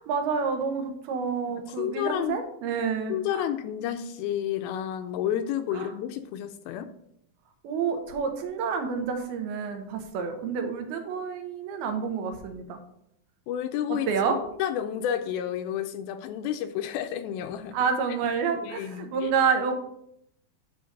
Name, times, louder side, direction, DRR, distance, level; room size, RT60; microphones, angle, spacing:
voice 1, 0.0-3.5 5.7-5.9 7.6-12.8 13.9-14.4 17.7-19.7, right 6 dB, 80° right, 5 dB, 2.8 m, -29 dB
voice 2, 1.8-2.4 3.1-6.9 13.5-17.8 18.6-19.3, left 10 dB, 80° left, 9 dB, 2.3 m, -31 dB
9.4 x 3.8 x 5.3 m, 0.73 s
omnidirectional pair, 4.5 m